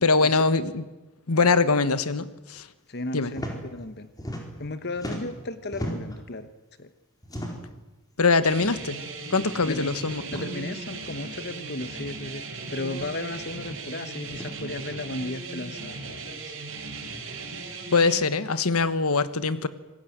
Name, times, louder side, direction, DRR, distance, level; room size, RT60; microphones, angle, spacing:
voice 1, 0.0-0.8 1.3-2.7 3.1-3.3 8.2-9.0 9.3-10.2 17.9-19.7, left 4 dB, 85° left, 13 dB, 1.3 m, -22 dB
voice 2, 2.9-4.1 4.6-6.5 6.8-6.9 9.7-9.9 10.3-16.7, left 2 dB, 45° left, 11 dB, 1.2 m, -35 dB
sound 1, 3.3-3.6 3.8-4.7 4.9-6.2 7.2-7.8 8.7-8.9 9.2-9.3 10.2-10.5 11.6-11.7 12.9-13.2 14.3-14.5, equal, 15° left, 4.4 m, -36 dB
sound 2, 8.4-18.2, right 3 dB, 60° right, 5.4 m, -37 dB
26.5 x 19.5 x 9.4 m, 1.1 s
head